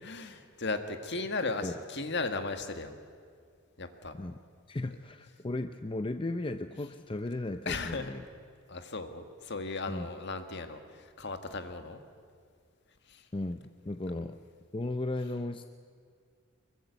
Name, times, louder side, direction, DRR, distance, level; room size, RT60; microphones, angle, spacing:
voice 1, 0.0-3.0 3.8-4.1 7.6-8.1 8.7-12.0 13.1-13.3, left 3 dB, 55° left, 7 dB, 1.8 m, -36 dB
voice 2, 1.4-1.7 4.1-4.4 4.7-8.2 9.9-10.1 13.3-14.4 14.7-15.6, left 2 dB, 25° left, 9 dB, 0.6 m, -35 dB
24.5 x 22.0 x 8.2 m, 2.1 s
head